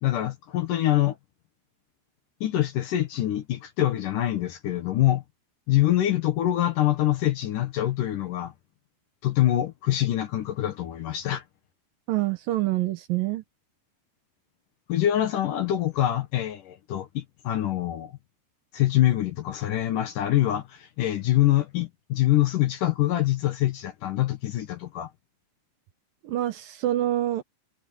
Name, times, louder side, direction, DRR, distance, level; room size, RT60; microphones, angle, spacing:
voice 1, 0.0-1.2 2.4-5.2 5.7-8.5 9.2-11.4 14.9-18.1 18.7-25.1, left 13 dB, 70° left, 2.1 m, -25 dB
voice 2, 12.1-13.4 26.2-27.4, right 14 dB, 70° right, 2.3 m, -26 dB
omnidirectional pair, 5.2 m